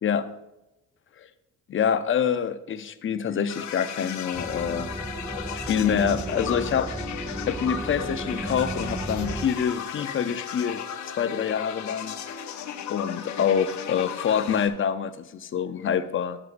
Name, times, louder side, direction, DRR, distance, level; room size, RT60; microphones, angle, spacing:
voice 1, 0.0-0.3 1.2-1.3 1.7-4.9 5.5-6.9 7.5-12.1 12.9-16.4, left 8 dB, 45° left, 10 dB, 0.6 m, -26 dB
sound 1, 3.5-14.7, left 8 dB, 70° left, 0.8 m, -35 dB
sound 2, 4.3-9.5, right 2 dB, 5° right, 0.4 m, -34 dB
10.5 x 7.9 x 2.6 m, 0.94 s
cardioid pair, 90°, 30 cm